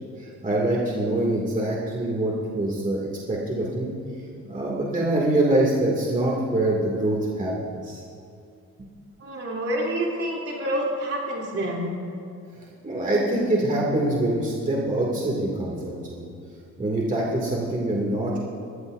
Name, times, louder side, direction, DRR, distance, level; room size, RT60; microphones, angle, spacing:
voice 1, 0.0-3.9 4.4-8.0 12.6-16.3 16.8-18.4, right 1 dB, 25° right, -4 dB, 2.5 m, -25 dB
voice 2, 9.2-12.0, right 1 dB, 50° right, -3 dB, 3.4 m, -28 dB
20.5 x 14.0 x 2.7 m, 2.4 s
cardioid pair, 90°, 30 cm